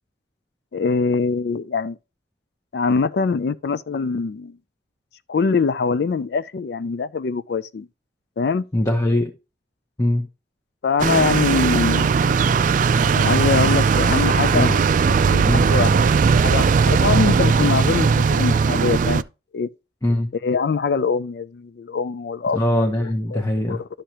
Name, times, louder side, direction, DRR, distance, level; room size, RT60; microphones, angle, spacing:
voice 1, 0.7-2.0 2.7-4.6 5.3-7.9 8.4-8.6 10.8-12.2 13.1-14.7 15.1-15.9 16.4-19.2 19.5-19.7 20.4-22.6 23.0-23.9, left 4 dB, 60° left, 0.4 m, -23 dB
voice 2, 8.7-9.3 10.0-10.3 14.4-14.8 15.5-15.7 20.0-20.3 22.5-23.8, left 1 dB, 20° left, 0.9 m, -21 dB
sound 1, 11.0-19.2, right 5 dB, 45° right, 0.3 m, -18 dB
11.5 x 6.5 x 2.9 m
head